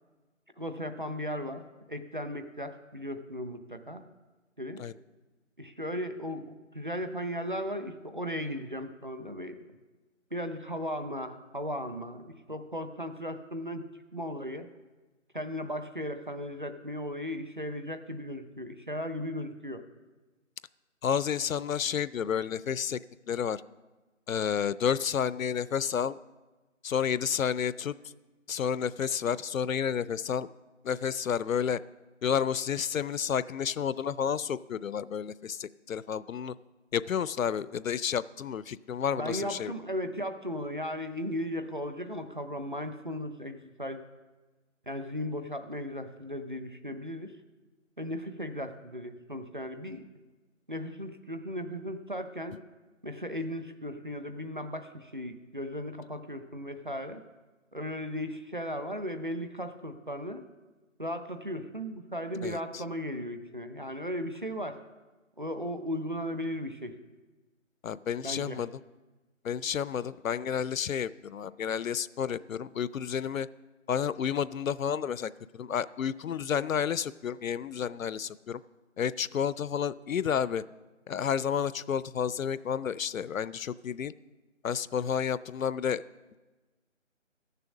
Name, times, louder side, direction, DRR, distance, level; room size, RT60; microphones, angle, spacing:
voice 1, 0.6-1.6 1.9-4.0 4.6-4.8 5.6-9.6 10.3-13.8 14.1-14.7 15.3-19.8 39.2-44.0 44.9-47.3 48.0-50.1 50.7-52.6 53.0-57.2 57.7-60.5 61.0-64.8 65.4-67.0 68.2-68.6, equal, 40° right, 8 dB, 0.6 m, -36 dB
voice 2, 21.0-23.0 23.3-23.6 24.3-26.2 26.8-27.9 28.5-30.5 30.8-31.8 32.2-36.5 36.9-39.7 62.4-62.8 67.8-68.8 69.4-73.5 73.9-78.6 79.0-80.6 81.1-84.1 84.6-86.0, left 8 dB, 90° left, 18 dB, 0.5 m, -31 dB
14.0 x 6.9 x 6.0 m, 1.2 s
figure-of-eight pair, 180°, 39 cm